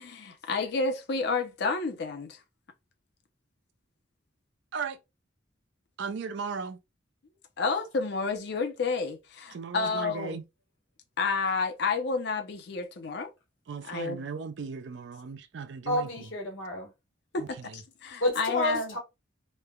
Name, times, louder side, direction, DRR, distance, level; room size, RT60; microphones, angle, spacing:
voice 1, 0.0-2.4 7.6-10.4 11.2-13.3 13.9-14.2 17.3-18.9, left 4 dB, 60° left, 0.5 m, -30 dB
voice 2, 6.0-6.8 9.5-10.4 13.7-16.1 17.4-17.8, right 5 dB, 65° right, 0.4 m, -37 dB
voice 3, 15.9-16.9 18.2-19.0, left 1 dB, 85° left, 1.2 m, -30 dB
3.1 x 2.1 x 2.3 m
head